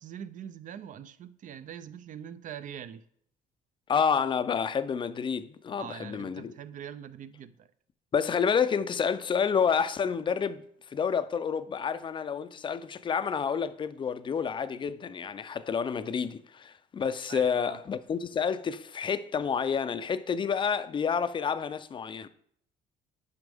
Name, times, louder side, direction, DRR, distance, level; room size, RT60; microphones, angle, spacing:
voice 1, 0.0-3.0 5.8-7.7 17.3-17.8, right 9 dB, 50° right, 0.5 m, -43 dB
voice 2, 3.9-6.5 8.1-22.3, left 6 dB, 30° left, 0.5 m, -29 dB
9.5 x 5.0 x 3.5 m
cardioid pair, 110°, 17 cm